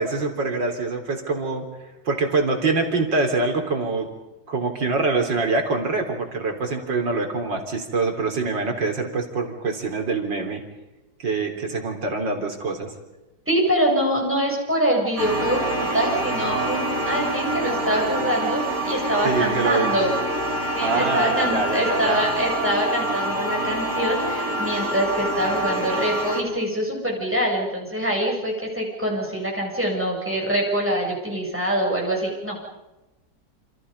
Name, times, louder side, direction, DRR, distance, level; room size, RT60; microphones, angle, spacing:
voice 1, 0.0-1.7 2.0-4.1 4.5-10.6 11.2-12.9 19.2-19.9 20.8-22.2, right 3 dB, 85° right, 3 dB, 4.4 m, -24 dB
voice 2, 13.5-20.1 20.7-32.6, right 1 dB, 5° right, -2 dB, 7.9 m, -24 dB
sound 1, 15.2-26.4, right 1 dB, 50° right, 4.5 m, -26 dB
28.5 x 28.5 x 5.5 m, 1.0 s
omnidirectional pair, 1.9 m